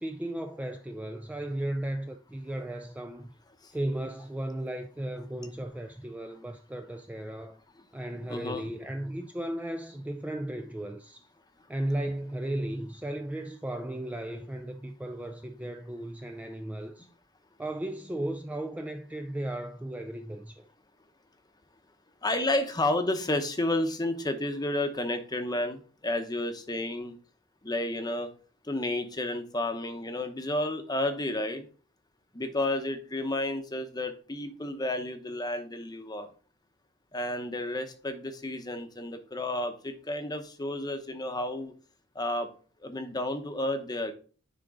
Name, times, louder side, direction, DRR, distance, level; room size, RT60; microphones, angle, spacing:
voice 1, 0.0-3.3 3.7-7.6 7.9-11.3 11.7-17.1 17.6-20.7, right 1 dB, 5° right, 0.3 m, -35 dB
voice 2, 8.3-8.7 22.2-27.1 27.6-28.3 28.7-31.6 32.3-36.3 37.1-41.7 42.1-42.5 42.8-44.1, left 1 dB, 20° left, 0.8 m, -31 dB
9.9 x 3.7 x 3.7 m
head